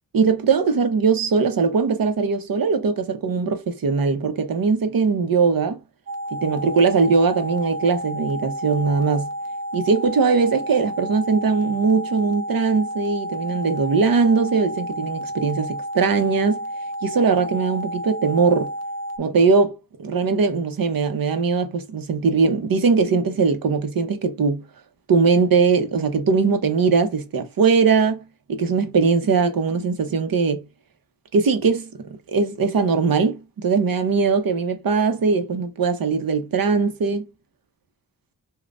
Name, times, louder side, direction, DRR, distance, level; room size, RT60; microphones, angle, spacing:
voice 1, 0.1-5.8 6.3-9.3 9.7-16.6 17.0-18.7 19.2-19.7 20.0-24.6 25.1-28.2 28.5-30.6 31.3-31.9 32.3-37.3, right 5 dB, 70° right, 0.9 m, -20 dB
sound 1, 6.1-19.2, equal, 45° right, 0.6 m, -31 dB
5.2 x 2.4 x 2.5 m
cardioid pair, 75°, 36 cm